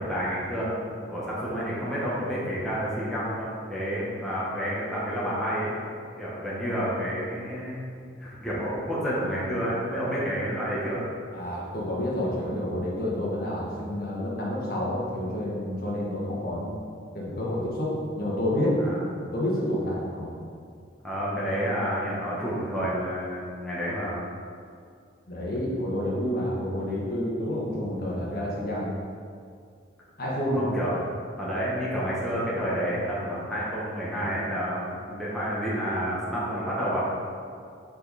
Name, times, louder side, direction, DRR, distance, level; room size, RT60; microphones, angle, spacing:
voice 1, 0.0-5.8 6.2-7.8 8.2-11.0 18.8-19.0 21.0-24.2 30.5-30.9 31.4-37.1, equal, ahead, -9 dB, 1.2 m, -29 dB
voice 2, 11.3-16.7 17.1-18.8 19.3-20.3 25.3-29.0 30.2-30.7, left 1 dB, 50° left, -5 dB, 1.4 m, -29 dB
5.6 x 5.3 x 4.1 m, 2.2 s
head